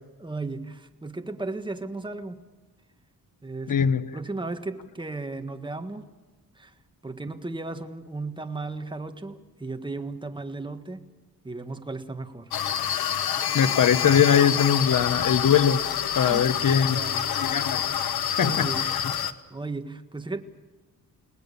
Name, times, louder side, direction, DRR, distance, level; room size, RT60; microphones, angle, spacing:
voice 1, 0.2-2.4 3.4-3.7 4.1-6.1 6.5-6.7 7.0-11.1 11.4-12.5 12.9-13.0 16.2-17.7 18.4-20.4, right 3 dB, 15° right, 1.6 m, -35 dB
voice 2, 3.7-4.1 13.5-15.8 16.1-17.0 17.4-18.0 18.4-18.7, left 8 dB, 60° left, 1.1 m, -21 dB
sound 1, 12.5-19.3, left 9 dB, 85° left, 1.2 m, -27 dB
30.0 x 19.0 x 7.0 m
wide cardioid pair, 120°, 36 cm